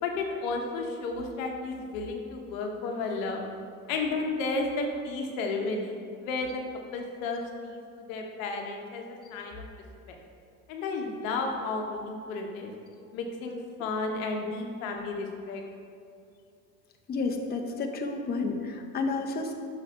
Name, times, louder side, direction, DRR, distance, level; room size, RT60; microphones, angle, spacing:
voice 1, 0.0-3.4 3.9-6.6 6.9-9.7 10.1-10.2 10.7-12.7 13.1-15.6, left 3 dB, 75° left, 2 dB, 0.9 m, -32 dB
voice 2, 17.1-19.5, left 3 dB, 25° left, 3 dB, 0.7 m, -31 dB
6.4 x 3.3 x 5.4 m, 2.4 s
hypercardioid pair, 70°, 40 cm